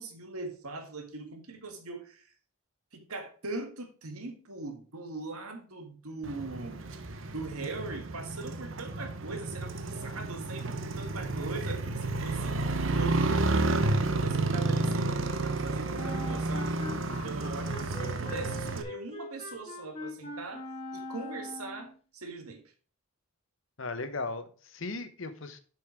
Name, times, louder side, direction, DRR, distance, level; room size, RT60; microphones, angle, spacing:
voice 1, 0.0-2.3 2.9-6.9 7.3-13.8 14.2-16.7 17.1-20.6 20.9-22.6, right 3 dB, 85° right, 1.9 m, -41 dB
Motorcycle, 6.2-18.8, right 2 dB, 60° right, 0.9 m, -31 dB
Wind instrument woodwind instrument, 15.9-22.0, left 2 dB, 25° left, 1.6 m, -42 dB
voice 2, 23.8-25.6, left 3 dB, 60° left, 1.0 m, -37 dB
7.7 x 5.6 x 4.9 m
head